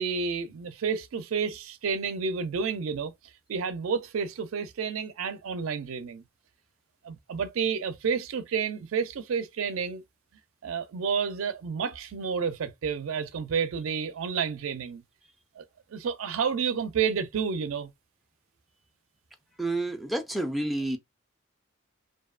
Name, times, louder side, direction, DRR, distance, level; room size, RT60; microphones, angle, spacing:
voice 1, 0.0-3.1 3.5-6.2 7.0-10.0 10.6-15.0 15.6-15.7 15.9-17.9, right 6 dB, 80° right, 0.4 m, -30 dB
voice 2, 19.6-21.0, right 1 dB, ahead, 0.3 m, -29 dB
2.6 x 2.0 x 2.3 m
head